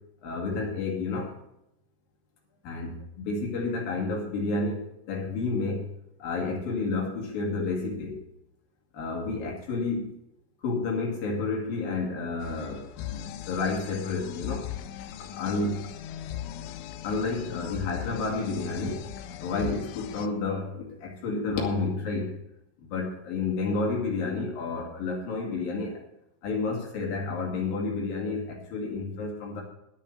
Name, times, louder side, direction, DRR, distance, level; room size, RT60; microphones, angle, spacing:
voice 1, 0.2-1.3 2.6-5.9 6.2-8.2 8.9-10.1 10.6-14.7 15.2-15.9 17.0-19.1 19.4-22.4 22.8-26.0 26.4-29.6, left 3 dB, 55° left, -1 dB, 3.8 m, -30 dB
sound 1, 12.4-20.3, left 11 dB, 85° left, 3.1 m, -39 dB
11.0 x 9.1 x 7.6 m, 0.84 s
omnidirectional pair, 5.3 m